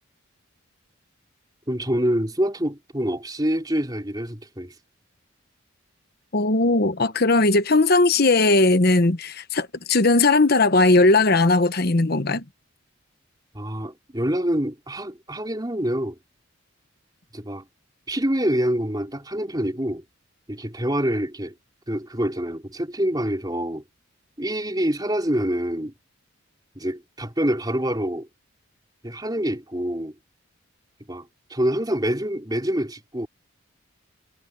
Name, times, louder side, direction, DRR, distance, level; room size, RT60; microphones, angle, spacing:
voice 1, 1.7-4.7 13.5-16.2 17.3-17.6 18.1-20.0 20.5-21.5 21.9-23.8 24.4-25.9 26.8-28.3 29.0-30.1 31.1-33.3, equal, 20° right, 4.1 m, -26 dB
voice 2, 6.3-12.4, left 2 dB, 45° left, 1.1 m, -18 dB
head